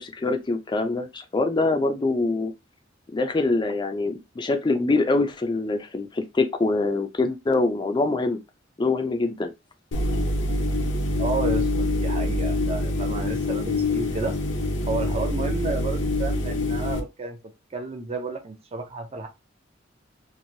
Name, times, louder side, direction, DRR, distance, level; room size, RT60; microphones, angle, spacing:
voice 1, 0.0-2.5 3.1-8.4 8.8-9.5, left 3 dB, 25° left, 0.4 m, -24 dB
sound 1, 9.9-17.0, left 2 dB, 70° left, 0.6 m, -25 dB
voice 2, 11.2-14.3 14.9-17.4 17.7-19.3, right 3 dB, 30° right, 0.5 m, -31 dB
3.1 x 2.5 x 2.6 m
head